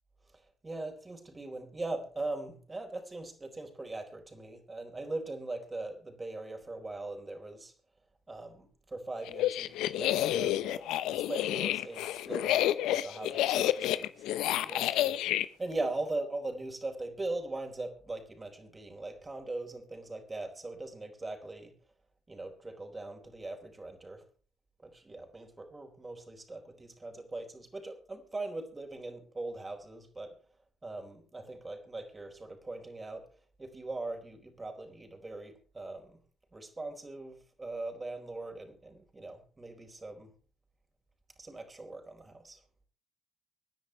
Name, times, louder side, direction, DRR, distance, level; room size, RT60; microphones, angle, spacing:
voice 1, 0.3-7.7 8.3-15.2 15.6-21.7 22.3-24.2 24.8-30.4 30.8-33.3 33.6-36.2 36.5-40.3 41.4-42.6, right 2 dB, 25° right, 4 dB, 4.4 m, -40 dB
sound 1, 9.3-15.5, left 13 dB, 70° left, 0.8 m, -29 dB
25.0 x 10.5 x 3.3 m, 0.38 s
hypercardioid pair, 50°, 0 cm